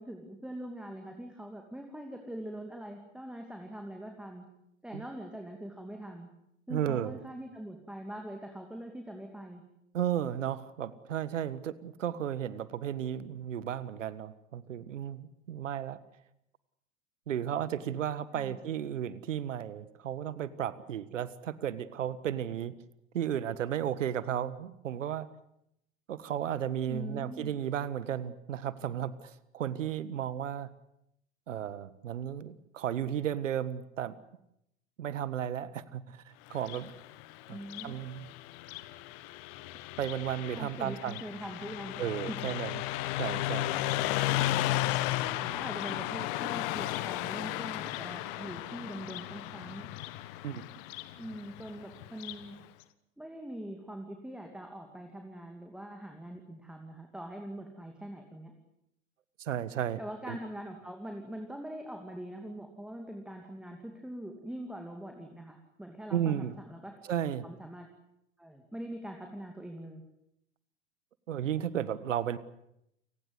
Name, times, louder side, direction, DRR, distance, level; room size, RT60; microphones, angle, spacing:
voice 1, 0.0-4.5 4.8-6.3 6.7-9.6 18.3-18.6 26.9-27.5 37.5-38.0 40.5-42.0 42.3-42.4 44.4-44.8 45.3-49.9 51.2-52.5 53.2-58.5 60.0-66.9 67.4-67.9 68.4-70.0, right 1 dB, ahead, 3 dB, 2.7 m, -43 dB
voice 2, 6.7-7.2 9.9-16.0 17.3-22.8 23.1-25.3 26.1-30.7 31.5-34.2 35.0-36.9 37.5-37.6 37.8-38.3 40.0-41.2 42.0-42.8 43.2-43.7 50.4-50.6 59.4-60.0 60.3-60.4 66.1-66.6 67.1-67.4 71.3-72.4, right 10 dB, 65° right, 17 dB, 1.6 m, -34 dB
Car passing by, 36.5-52.5, left 15 dB, 45° left, 1.5 m, -35 dB
29.5 x 19.0 x 8.2 m, 0.80 s
figure-of-eight pair, 90°, 40 cm